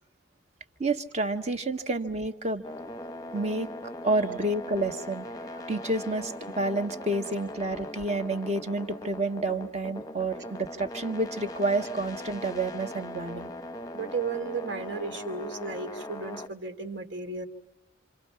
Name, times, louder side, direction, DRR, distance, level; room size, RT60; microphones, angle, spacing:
voice 1, 0.8-2.6 3.3-3.7 4.0-5.2 5.5-13.5, right 2 dB, 35° right, 6 dB, 1.6 m, -29 dB
sound 1, 2.6-16.5, left 1 dB, 20° left, 0.8 m, -40 dB
voice 2, 13.9-17.5, right 4 dB, 75° right, 8 dB, 2.5 m, -34 dB
28.0 x 27.5 x 5.8 m, 0.88 s
head